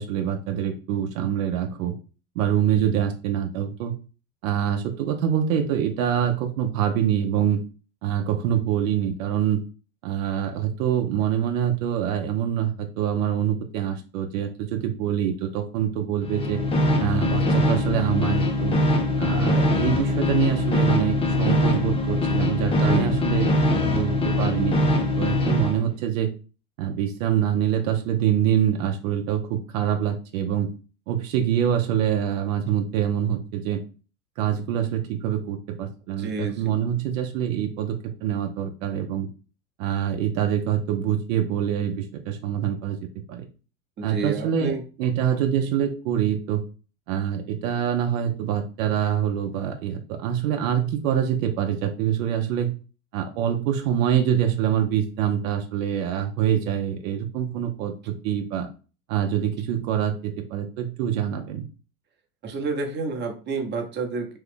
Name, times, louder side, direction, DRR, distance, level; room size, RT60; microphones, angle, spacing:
voice 1, 0.0-1.9 2.4-3.9 4.4-7.6 8.0-9.6 10.0-16.6 17.0-18.8 19.2-26.3 26.8-30.7 31.1-33.8 34.4-39.3 39.8-43.0 43.3-43.5 44.0-46.6 47.1-52.7 53.1-58.7 59.1-61.6, right 9 dB, 65° right, 5 dB, 0.7 m, -25 dB
sound 1, 16.2-25.8, left 1 dB, 15° left, 0.3 m, -22 dB
voice 2, 22.8-23.1 36.2-36.7 44.0-44.8 62.4-64.4, right 4 dB, 25° right, 3 dB, 0.8 m, -29 dB
3.1 x 2.3 x 3.5 m, 0.35 s
hypercardioid pair, 100°, 42 cm